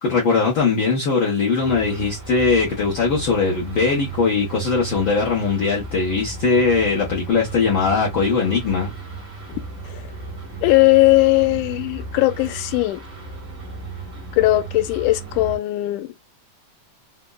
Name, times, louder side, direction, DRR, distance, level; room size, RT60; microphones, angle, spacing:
voice 1, 0.0-8.9, left 4 dB, 70° left, 1.2 m, -20 dB
sound 1, 1.6-15.6, right 4 dB, 50° right, 0.9 m, -35 dB
voice 2, 10.6-13.0 14.3-16.1, left 18 dB, 90° left, 2.1 m, -18 dB
5.0 x 2.0 x 2.2 m
omnidirectional pair, 3.5 m